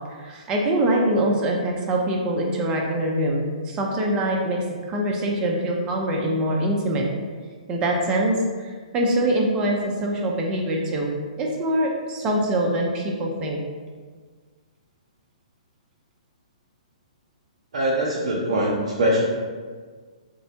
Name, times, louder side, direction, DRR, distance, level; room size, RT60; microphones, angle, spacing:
voice 1, 0.2-4.6 4.9-7.0 7.7-8.4 8.6-11.1 11.4-13.6, right 1 dB, 20° right, -1 dB, 0.5 m, -24 dB
voice 2, 17.7-19.3, equal, 70° right, -5 dB, 0.5 m, -22 dB
3.5 x 2.1 x 2.7 m, 1.6 s
hypercardioid pair, 130°, 4 cm